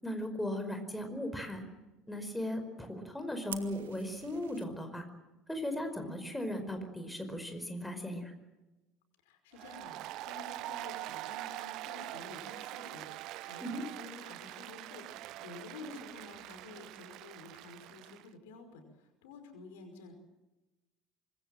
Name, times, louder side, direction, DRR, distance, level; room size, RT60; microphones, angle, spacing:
voice 1, 0.0-1.6 2.1-5.0 5.5-8.3 13.6-13.8 15.8-16.0, left 1 dB, 5° left, 6 dB, 5.1 m, -37 dB
Fire, 3.5-4.6, right 11 dB, 70° right, 1.7 m, -46 dB
voice 2, 9.2-20.2, left 3 dB, 65° left, 7 dB, 5.3 m, -51 dB
Applause, 9.5-18.3, right 16 dB, 50° right, 0.8 m, -44 dB
25.5 x 22.5 x 7.7 m, 1.1 s
figure-of-eight pair, 65°, 0 cm